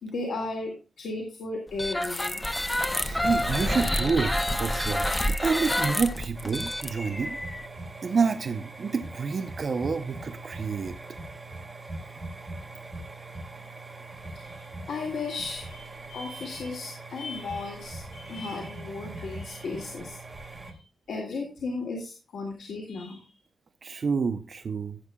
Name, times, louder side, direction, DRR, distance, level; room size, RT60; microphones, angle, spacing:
voice 1, 0.0-2.4 14.3-20.2 20.6-20.8 21.1-23.2, left 3 dB, 85° left, 0 dB, 2.2 m, -35 dB
sound 1, 1.7-7.7, left 1 dB, 10° left, 0.6 m, -28 dB
voice 2, 3.0-5.1 5.4-7.4 8.0-11.0 23.8-25.0, right 5 dB, 40° right, 7 dB, 0.6 m, -28 dB
sound 2, 6.3-20.7, right 2 dB, 15° right, 1.8 m, -41 dB
16.0 x 8.3 x 2.2 m, 0.33 s
wide cardioid pair, 160°, 0 cm